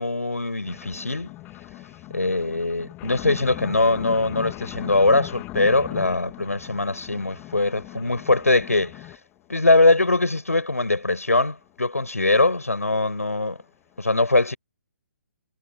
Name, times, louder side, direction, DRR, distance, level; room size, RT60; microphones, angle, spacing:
voice 1, 0.0-1.3 2.1-9.0 9.5-13.6 14.0-14.6, left 2 dB, 80° left, 6.0 m, -22 dB
sound 1, 0.6-9.2 9.8-9.9 10.1-10.2 10.5-10.6 10.9-11.0 11.3-11.4 12.1-12.2 12.4-12.5 12.8-12.9 13.2-13.3 13.6-13.7, left 19 dB, 20° left, 3.0 m, -39 dB
figure-of-eight pair, 130°, 8 cm